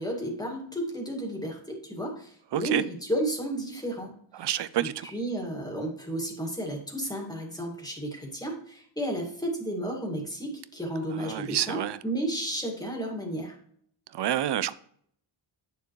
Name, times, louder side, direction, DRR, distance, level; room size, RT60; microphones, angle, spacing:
voice 1, 0.0-4.2 4.8-13.6, right 1 dB, 10° left, 2.1 m, -32 dB
voice 2, 2.5-2.8 4.3-5.1 11.1-12.0 14.1-14.7, right 12 dB, 60° right, 0.6 m, -28 dB
9.4 x 6.8 x 3.1 m
wide cardioid pair, 140°, 46 cm